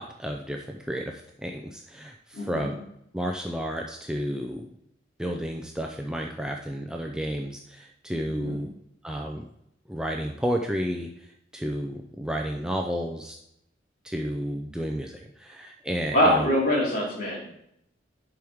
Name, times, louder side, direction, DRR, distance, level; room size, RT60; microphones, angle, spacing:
voice 1, 0.0-2.7 3.1-4.7 5.2-8.7 9.0-9.4 9.9-11.3 11.5-13.4 14.0-16.5, equal, 5° right, 1 dB, 0.4 m, -31 dB
voice 2, 2.3-2.7 8.4-8.6 16.1-17.6, equal, 50° left, -4 dB, 2.7 m, -24 dB
11.0 x 4.7 x 3.5 m, 0.76 s
head